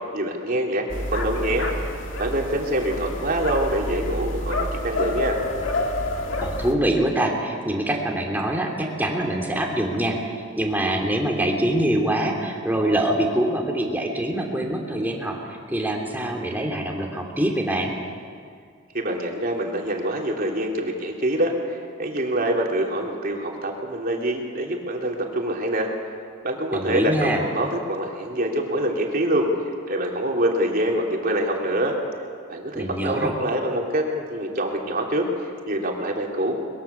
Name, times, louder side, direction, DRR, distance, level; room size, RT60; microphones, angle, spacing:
voice 1, 0.1-0.8 1.1-1.9 2.2-5.4 18.9-25.9 26.4-29.5 29.9-32.0 32.5-36.5, right 1 dB, 50° right, 0 dB, 3.4 m, -25 dB
sound 1, 0.9-6.8, left 1 dB, 70° left, 2.1 m, -28 dB
voice 2, 6.4-15.4 15.7-17.9 26.7-27.4 32.7-33.3, right 1 dB, 10° right, 0 dB, 3.2 m, -24 dB
23.0 x 21.5 x 7.2 m, 2.2 s
head